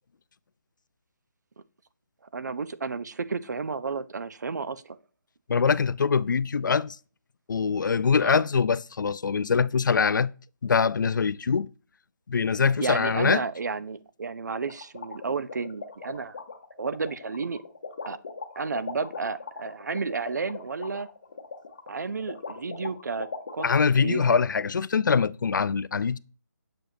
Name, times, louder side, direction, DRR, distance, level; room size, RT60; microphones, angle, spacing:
voice 1, 2.3-5.0 8.2-8.4 12.8-16.4 16.8-17.6 18.0-18.2 18.6-21.1 21.9-24.2, right 4 dB, 65° right, 0.5 m, -32 dB
voice 2, 5.5-7.0 7.5-10.3 10.6-11.7 12.3-13.4 23.6-26.2, left 5 dB, 80° left, 0.4 m, -23 dB
sound 1, 14.7-23.8, left 5 dB, 35° left, 0.8 m, -39 dB
7.4 x 5.1 x 2.6 m
hypercardioid pair, 175°, 10 cm